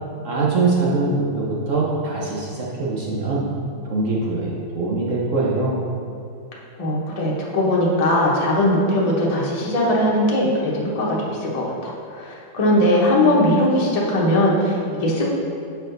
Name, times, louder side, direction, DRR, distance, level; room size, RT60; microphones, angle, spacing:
voice 1, 0.2-3.5 3.8-5.8, right 3 dB, 65° right, -5 dB, 0.8 m, -22 dB
voice 2, 6.8-15.3, left 1 dB, 40° left, -4 dB, 0.5 m, -20 dB
7.3 x 4.4 x 3.9 m, 2.5 s
omnidirectional pair, 2.3 m